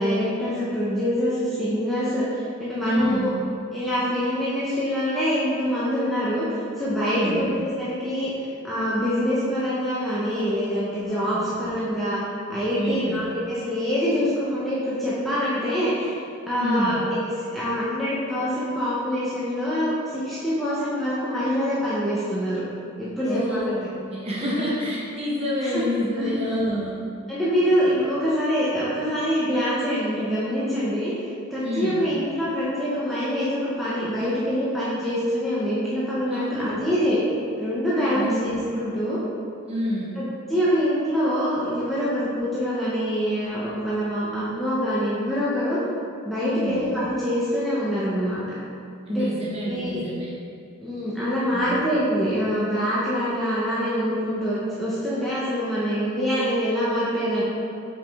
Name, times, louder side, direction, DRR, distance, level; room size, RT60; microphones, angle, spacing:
voice 1, 0.0-3.3 3.7-6.5 6.8-8.3 8.6-12.2 12.5-16.2 16.5-22.6 23.0-23.6 24.4-24.7 25.6-25.8 26.2-26.3 27.3-37.2 37.6-39.2 40.2-40.3 40.5-45.8 46.2-48.4 49.1-49.3 49.7-50.0 50.8-57.4, equal, ahead, -11 dB, 0.8 m, -25 dB
voice 2, 2.8-3.3 7.0-7.5 11.1-11.5 12.8-13.2 16.6-17.0 23.3-27.0 31.6-32.0 36.3-36.7 38.1-38.4 39.7-40.1 46.4-46.8 49.1-50.3 51.5-51.7, equal, 30° right, -6 dB, 1.2 m, -28 dB
5.3 x 5.0 x 3.5 m, 2.4 s
head